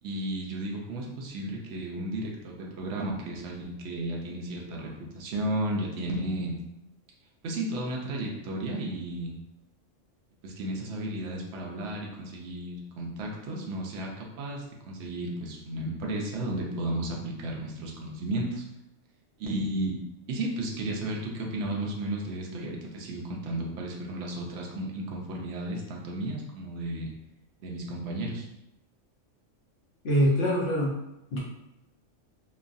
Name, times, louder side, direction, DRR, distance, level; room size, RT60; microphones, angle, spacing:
voice 1, 0.0-6.6 7.4-9.4 10.4-18.6 19.4-20.0 20.3-27.1 27.6-28.5, right 1 dB, 70° right, -1 dB, 0.9 m, -33 dB
voice 2, 30.0-31.0 31.3-31.4, equal, 55° left, -4 dB, 1.0 m, -24 dB
3.1 x 2.3 x 2.5 m, 0.88 s
omnidirectional pair, 1.3 m